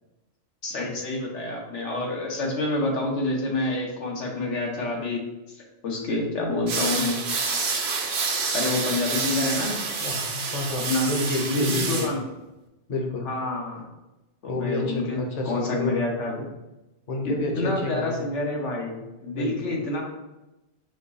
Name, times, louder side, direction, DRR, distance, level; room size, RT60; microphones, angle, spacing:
voice 1, 0.6-5.2 5.8-7.2 8.5-9.8 10.7-11.1 11.5-12.2 13.2-13.9 14.4-15.2 15.4-16.5 17.2-20.0, left 2 dB, 80° left, -1 dB, 1.3 m, -28 dB
sound 1, 6.7-12.1, right 4 dB, 65° right, 1.0 m, -28 dB
voice 2, 10.0-12.1 12.9-13.3 14.5-16.0 17.1-18.3 19.3-19.7, left 2 dB, 40° left, 1 dB, 0.7 m, -29 dB
5.0 x 2.4 x 4.0 m, 1.0 s
omnidirectional pair, 1.2 m